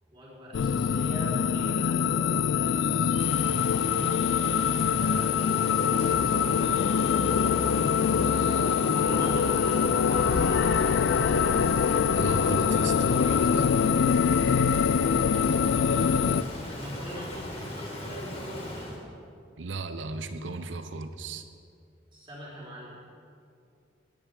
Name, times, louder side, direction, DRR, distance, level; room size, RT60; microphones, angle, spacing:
voice 1, 0.1-2.9 4.2-6.9 7.9-11.6 15.9-19.0 22.1-23.0, equal, 25° right, -6 dB, 4.6 m, -43 dB
sound 1, 0.5-16.4, left 7 dB, 80° left, 0.4 m, -24 dB
Rain, 3.2-19.0, left 1 dB, 30° left, 3.0 m, -38 dB
voice 2, 12.1-13.7 19.6-21.5, right 3 dB, 85° right, 9 dB, 0.8 m, -36 dB
19.5 x 10.5 x 5.0 m, 2.5 s
head